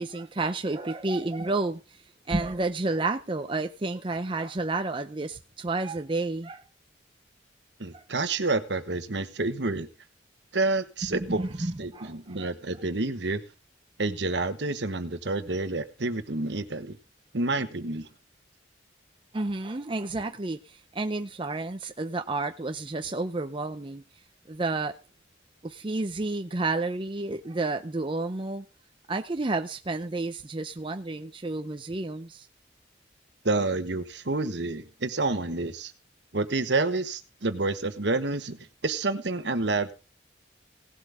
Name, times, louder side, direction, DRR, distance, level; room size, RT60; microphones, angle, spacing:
voice 1, 0.0-2.0 2.3-6.6 7.9-8.0 11.1-12.5 19.3-24.0 24.5-25.0 25.6-28.6 29.1-32.5, right 2 dB, 25° right, 0.6 m, -31 dB
voice 2, 7.8-9.9 10.5-13.4 14.0-17.0 17.3-18.1 33.4-35.9 36.3-39.9, right 3 dB, 65° right, 1.2 m, -29 dB
18.0 x 7.9 x 3.5 m
head